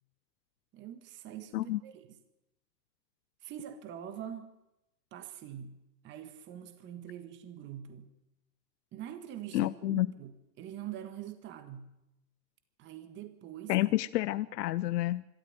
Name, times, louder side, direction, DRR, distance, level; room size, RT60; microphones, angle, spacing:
voice 1, 0.7-2.2 3.4-4.6 5.1-5.8 6.0-8.1 8.9-11.9 12.8-13.8, right 10 dB, 20° right, 9 dB, 1.5 m, -44 dB
voice 2, 9.5-10.1 13.7-15.2, left 16 dB, 70° left, 14 dB, 0.8 m, -29 dB
24.5 x 13.0 x 9.5 m, 0.90 s
supercardioid pair, 160°, 50 cm